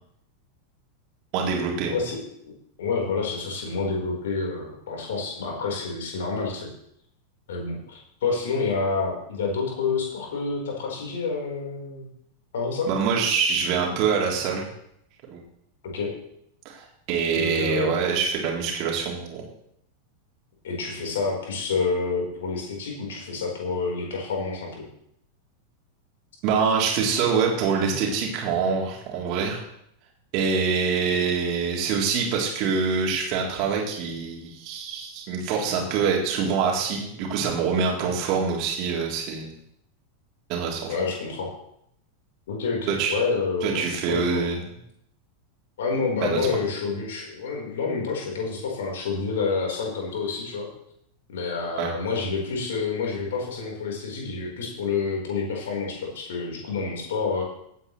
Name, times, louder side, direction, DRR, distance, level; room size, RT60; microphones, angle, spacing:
voice 1, 1.3-2.0 12.9-14.7 15.3-15.4 16.7-19.4 26.4-29.6 30.3-39.5 40.5-40.9 42.9-43.2 43.6-44.6 46.2-46.4 51.8-51.9, right 5 dB, 40° right, -1 dB, 3.5 m, -25 dB
voice 2, 1.9-2.5 2.8-6.7 7.5-12.1 12.5-12.9 15.8-16.1 17.3-18.0 20.6-24.8 31.1-31.2 40.9-41.5 42.5-43.8 44.1-44.4 45.8-50.7 51.3-57.4, left 4 dB, 60° left, -1 dB, 4.4 m, -28 dB
16.5 x 9.5 x 3.3 m, 0.75 s
figure-of-eight pair, 90°, 0 cm